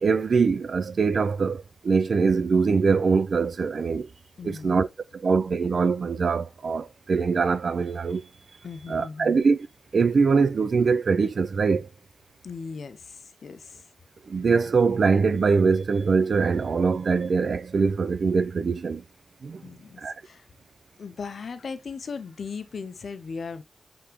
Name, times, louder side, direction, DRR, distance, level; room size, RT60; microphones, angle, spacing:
voice 1, 0.0-4.1 4.4-4.9 5.1-8.3 8.9-9.7 9.9-11.9 14.3-19.0 19.4-19.6 20.0-20.1, right 5 dB, 70° right, 0.4 m, -23 dB
voice 2, 4.4-4.8 8.6-9.3 12.4-13.8 19.6-20.5 21.0-23.6, left 5 dB, 75° left, 0.5 m, -38 dB
5.1 x 3.4 x 2.9 m
wide cardioid pair, 90°, 0 cm